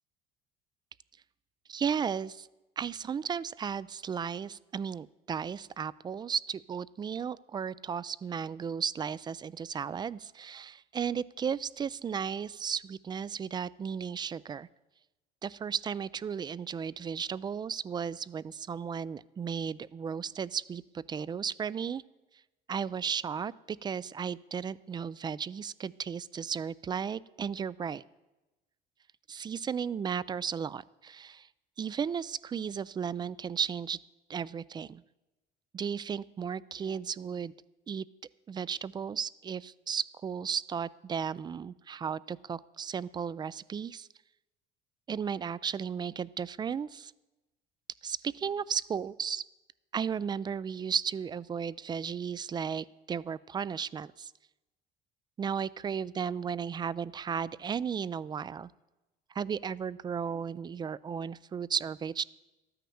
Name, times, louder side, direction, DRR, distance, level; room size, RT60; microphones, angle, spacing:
voice 1, 1.7-2.5 2.8-14.7 15.4-22.0 22.7-28.0 29.3-31.5 31.8-34.0 34.3-35.0 35.7-37.5 37.9-38.1 38.5-44.1 45.1-47.1 48.0-49.4 49.9-54.3 55.4-58.7 59.3-62.3, right 7 dB, 25° right, 21 dB, 0.3 m, -34 dB
13.0 x 9.4 x 6.9 m, 1.1 s
cardioid pair, 115°, 19 cm